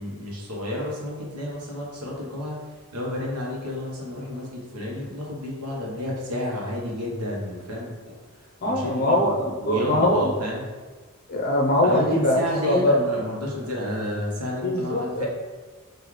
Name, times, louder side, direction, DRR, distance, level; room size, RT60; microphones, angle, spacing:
voice 1, 0.0-2.6 2.9-10.6 11.8-15.3, left 1 dB, 85° right, -3 dB, 1.2 m, -31 dB
voice 2, 8.6-10.3 11.3-13.0 14.6-15.3, left 1 dB, 45° left, 0 dB, 0.7 m, -22 dB
5.9 x 2.7 x 3.2 m, 1.4 s
head